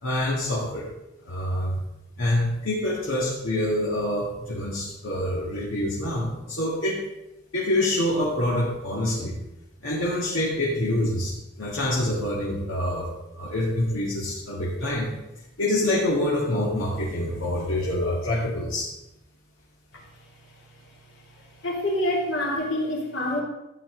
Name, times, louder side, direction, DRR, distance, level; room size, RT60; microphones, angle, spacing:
voice 1, 0.0-0.9 1.3-1.8 2.2-7.0 7.5-9.4 9.8-13.1 13.3-15.1 15.6-18.9, left 1 dB, 80° left, -6 dB, 2.1 m, -26 dB
voice 2, 21.6-23.4, left 1 dB, 65° left, -2 dB, 3.1 m, -26 dB
13.5 x 8.8 x 4.0 m, 0.94 s
head